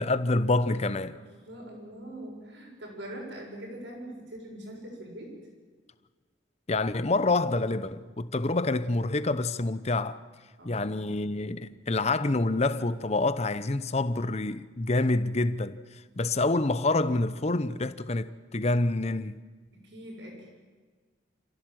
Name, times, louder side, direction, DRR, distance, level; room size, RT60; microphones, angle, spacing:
voice 1, 0.0-1.2 6.7-10.2 10.6-15.8 16.2-19.4, left 2 dB, 35° left, 0.8 m, -27 dB
voice 2, 1.1-5.4 10.6-10.9 19.7-20.5, right 1 dB, 65° right, 7.1 m, -43 dB
28.5 x 16.0 x 7.7 m
head